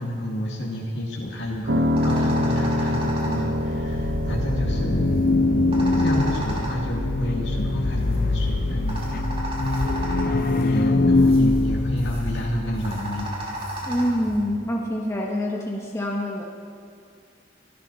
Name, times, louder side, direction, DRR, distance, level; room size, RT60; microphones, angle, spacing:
voice 1, 0.0-5.1 6.0-9.3 9.7-9.8 10.2-13.3, equal, 80° left, -3 dB, 2.2 m, -30 dB
sound 1, 1.2-14.4, right 1 dB, 35° right, 3.5 m, -36 dB
Piano, 1.7-11.8, left 1 dB, 75° right, 1.1 m, -29 dB
sound 2, 3.8-12.9, left 2 dB, 55° left, 0.6 m, -23 dB
voice 2, 13.9-16.4, equal, 15° left, -2 dB, 1.4 m, -26 dB
24.0 x 13.0 x 4.2 m, 2.4 s
head